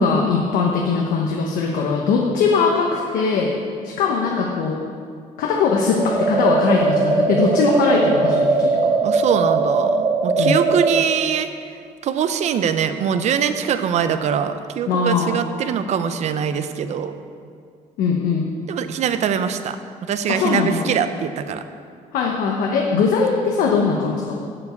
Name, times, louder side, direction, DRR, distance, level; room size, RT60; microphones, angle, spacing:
voice 1, 0.0-3.5 3.8-4.8 5.4-9.0 10.4-10.6 14.9-15.4 18.0-18.5 20.3-20.9 22.1-24.4, left 4 dB, 85° left, -1 dB, 1.1 m, -20 dB
sound 1, 6.0-11.0, right 3 dB, 25° right, 0.9 m, -19 dB
voice 2, 9.0-11.5 12.0-17.1 18.7-19.8 20.1-21.6 22.9-23.1, right 8 dB, 55° right, 10 dB, 0.6 m, -22 dB
7.5 x 7.2 x 8.0 m, 2.2 s
cardioid pair, 140°, 14 cm